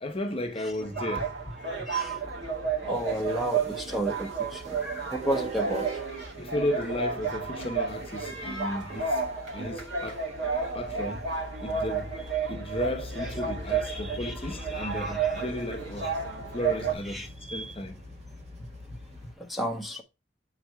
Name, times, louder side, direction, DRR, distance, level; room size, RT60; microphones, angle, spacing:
voice 1, 0.0-1.9 6.4-9.2 9.5-10.2 10.7-11.3 11.6-12.1 12.5-16.1 16.5-18.0 18.6-19.3, left 1 dB, 30° left, 0.9 m, -34 dB
sound 1, 0.8-16.9, right 5 dB, 70° right, 2.1 m, -32 dB
sound 2, 1.3-19.3, equal, 35° right, 1.4 m, -43 dB
voice 2, 2.8-5.9 13.8-15.3 17.1-17.7 19.5-20.0, equal, ahead, 1.0 m, -33 dB
7.7 x 4.1 x 4.6 m
head